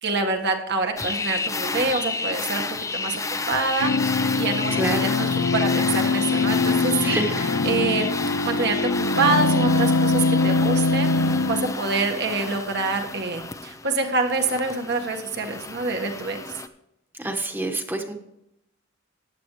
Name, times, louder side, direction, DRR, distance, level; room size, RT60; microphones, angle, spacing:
voice 1, 0.0-2.6 2.9-3.2 3.5-7.2 7.6-8.1 8.4-16.4, right 3 dB, 55° right, 3 dB, 1.7 m, -26 dB
sound 1, 1.0-16.7, left 3 dB, 15° left, 0.6 m, -31 dB
sound 2, 3.8-11.7, left 3 dB, 85° left, 0.7 m, -22 dB
voice 2, 4.7-5.3 7.0-7.5 17.1-18.1, right 2 dB, 10° right, 4 dB, 1.3 m, -27 dB
14.5 x 10.5 x 3.3 m, 0.83 s
head